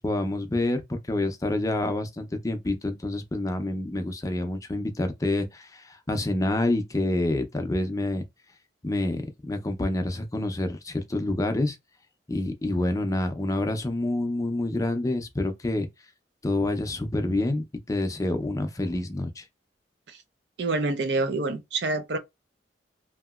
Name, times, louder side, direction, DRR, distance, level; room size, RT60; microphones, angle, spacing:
voice 1, 0.0-8.2 8.8-11.8 12.3-15.9 16.4-19.4, left 1 dB, 20° left, 0.5 m, -27 dB
voice 2, 20.6-22.2, right 3 dB, 65° right, 0.5 m, -27 dB
2.9 x 2.8 x 2.3 m
head